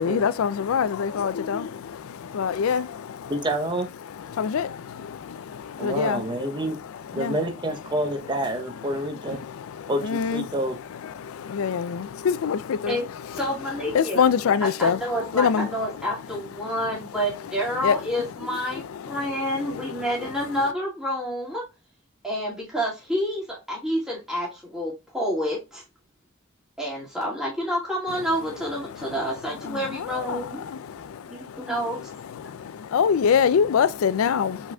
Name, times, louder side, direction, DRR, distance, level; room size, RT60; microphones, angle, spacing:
voice 1, 0.0-3.3 4.2-6.2 7.1-7.4 9.3-10.5 11.0-13.4 13.9-15.7 16.6-17.0 17.8-18.0 18.5-19.9 28.8-29.2 29.6-31.5 32.5-34.7, left 7 dB, 80° left, 0.4 m, -26 dB
voice 2, 3.3-3.9 5.8-6.8 7.1-9.4 9.9-10.8, right 1 dB, 20° right, 0.6 m, -28 dB
voice 3, 13.4-14.2 14.6-18.8 19.1-21.7 22.2-25.8 26.8-30.6 31.3-32.0, equal, 5° right, 1.9 m, -28 dB
4.8 x 3.9 x 2.2 m
head